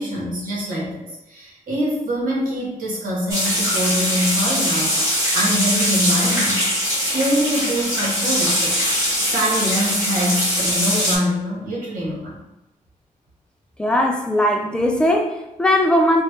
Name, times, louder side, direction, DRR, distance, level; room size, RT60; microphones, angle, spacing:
voice 1, 0.0-4.9 5.3-6.6 7.0-8.7 9.2-12.4, equal, 85° right, -4 dB, 1.3 m, -24 dB
sound 1, 3.3-11.2, equal, 20° right, 1.2 m, -21 dB
voice 2, 13.8-16.2, left 1 dB, 5° left, 1 dB, 0.4 m, -19 dB
3.5 x 2.6 x 3.1 m, 0.91 s
wide cardioid pair, 160°, 14 cm